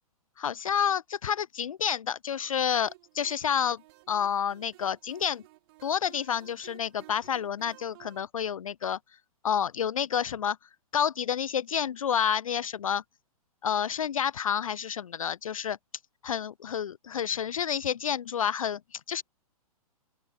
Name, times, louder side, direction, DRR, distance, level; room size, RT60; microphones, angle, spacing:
voice 1, 0.4-3.8 4.1-5.4 5.8-9.0 9.4-10.6 10.9-13.0 13.6-15.8 16.2-19.2, left 8 dB, 60° left, 0.5 m, -29 dB
sound 1, 2.4-8.3, right 20 dB, 40° right, 4.0 m, -55 dB
open air
figure-of-eight pair, 115°, 19 cm